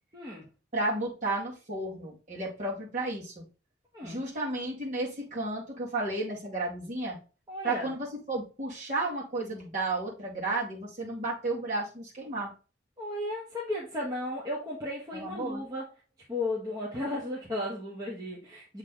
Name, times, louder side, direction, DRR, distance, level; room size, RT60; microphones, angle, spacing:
voice 1, 0.1-0.5 3.9-4.4 7.5-7.9 13.0-15.9 16.3-18.8, left 1 dB, 20° right, -5 dB, 1.2 m, -35 dB
voice 2, 0.7-3.5 4.0-7.2 7.6-12.5 15.1-15.6, right 2 dB, 40° right, -4 dB, 2.1 m, -33 dB
7.4 x 3.3 x 3.9 m, 0.33 s
head